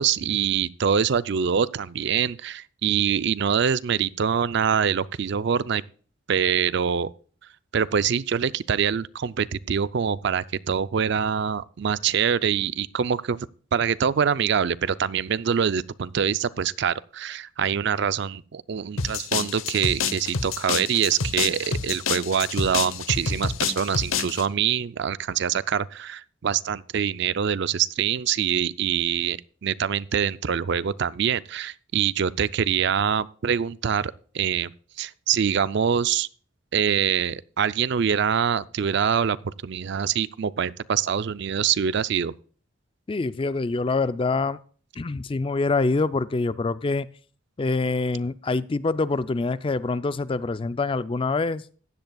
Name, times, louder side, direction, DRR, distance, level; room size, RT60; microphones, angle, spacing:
voice 1, 0.0-5.8 6.3-7.1 7.7-13.5 13.7-34.7 35.0-36.3 36.7-42.3, right 7 dB, 55° right, 0.4 m, -24 dB
sound 1, 19.0-24.5, left 6 dB, 80° left, 0.9 m, -28 dB
voice 2, 43.1-44.6 45.0-47.1 47.6-51.7, left 3 dB, 25° left, 0.4 m, -25 dB
15.5 x 10.5 x 2.3 m
head